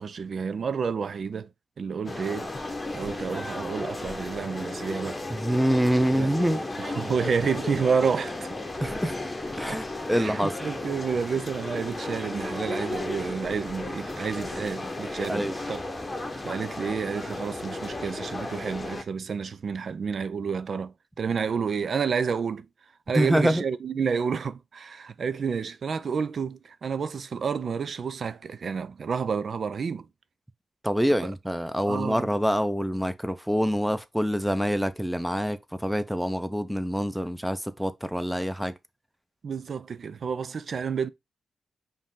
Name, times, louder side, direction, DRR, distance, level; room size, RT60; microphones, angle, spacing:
voice 1, 0.0-1.5 1.8-5.2 6.1-6.3 6.8-8.5 9.7-9.8 10.1-15.8 16.4-22.7 23.1-30.1 31.2-31.3 31.9-32.3 39.4-41.1, right 6 dB, 65° right, 0.4 m, -30 dB
sound 1, 2.1-19.0, left 2 dB, 25° left, 0.9 m, -34 dB
voice 2, 5.3-6.6 8.8-9.2 9.6-10.6 15.3-15.5 23.1-23.6 30.8-38.7, equal, 5° right, 0.7 m, -26 dB
5.1 x 2.7 x 3.6 m
cardioid pair, 55°, 0 cm